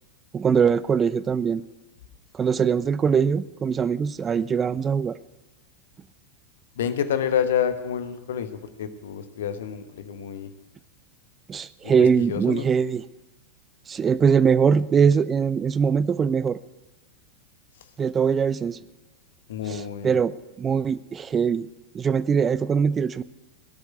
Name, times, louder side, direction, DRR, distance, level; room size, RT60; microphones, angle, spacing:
voice 1, 0.3-1.6 2.3-5.2 11.5-13.0 13.9-16.6 18.0-18.8 19.7-21.7 21.9-23.2, right 6 dB, 20° right, 17 dB, 0.4 m, -22 dB
voice 2, 6.7-10.5 11.8-11.9 12.3-12.7 19.5-20.2, left 8 dB, 60° left, 10 dB, 1.2 m, -28 dB
17.5 x 8.2 x 9.3 m, 1.1 s
figure-of-eight pair, 90°, 0 cm